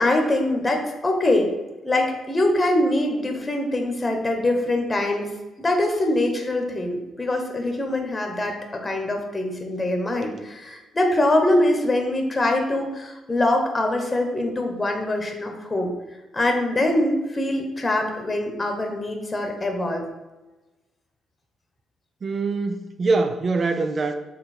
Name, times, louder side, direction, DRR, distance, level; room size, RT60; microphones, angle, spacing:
voice 1, 0.0-1.5 1.8-5.3 5.6-15.9 16.3-20.1, left 1 dB, 20° left, 3 dB, 1.1 m, -23 dB
voice 2, 22.2-24.1, right 3 dB, 40° right, 7 dB, 0.5 m, -23 dB
6.8 x 3.3 x 4.3 m, 1.1 s
cardioid pair, 90°, 0 cm